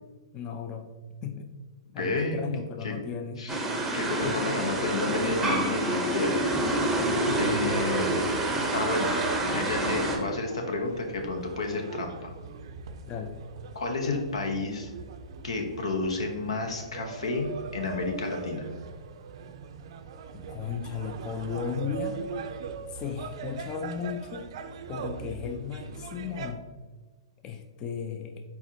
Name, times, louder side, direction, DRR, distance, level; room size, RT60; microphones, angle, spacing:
voice 1, 0.3-0.9 1.2-1.5 1.9-3.4 4.2-4.5 7.3-7.8 13.1-13.4 20.3-22.2 22.9-24.5 24.9-26.6 27.4-28.4, left 6 dB, 25° left, 6 dB, 0.4 m, -35 dB
voice 2, 2.0-2.4 2.8-3.0 3.4-3.6 3.9-6.4 7.4-8.2 8.7-9.2 9.4-12.3 13.7-14.9 15.4-17.5 17.7-18.6, left 3 dB, 85° left, 3 dB, 0.9 m, -31 dB
sound 1, 3.5-10.2, right 1 dB, 10° right, 0.7 m, -27 dB
sound 2, 7.2-26.5, right 5 dB, 60° right, 0.4 m, -41 dB
4.7 x 4.1 x 2.7 m, 1.3 s
hypercardioid pair, 135°, 3 cm